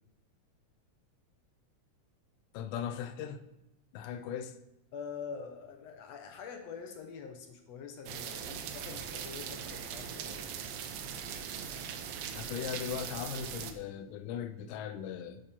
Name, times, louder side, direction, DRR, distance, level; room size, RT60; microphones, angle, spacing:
voice 1, 2.5-3.4 3.9-4.5 12.3-15.4, left 8 dB, 85° left, 2.2 m, -38 dB
voice 2, 4.9-10.5, left 6 dB, 70° left, 1.7 m, -45 dB
sound 1, 8.1-13.7, right 7 dB, 80° right, 1.4 m, -40 dB
8.8 x 6.6 x 4.3 m
omnidirectional pair, 3.6 m